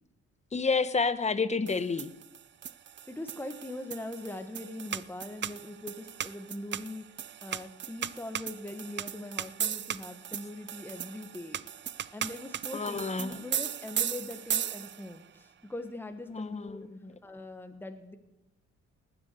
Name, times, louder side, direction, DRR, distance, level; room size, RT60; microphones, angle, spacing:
voice 1, 0.5-2.1 12.7-13.4 16.3-17.1, left 4 dB, 20° left, 0.9 m, -30 dB
sound 1, 1.7-15.2, right 9 dB, 40° right, 0.5 m, -37 dB
voice 2, 3.1-11.6 12.1-16.9 17.2-18.2, left 1 dB, 5° left, 1.3 m, -41 dB
18.5 x 7.1 x 8.3 m
cardioid pair, 90°, 30 cm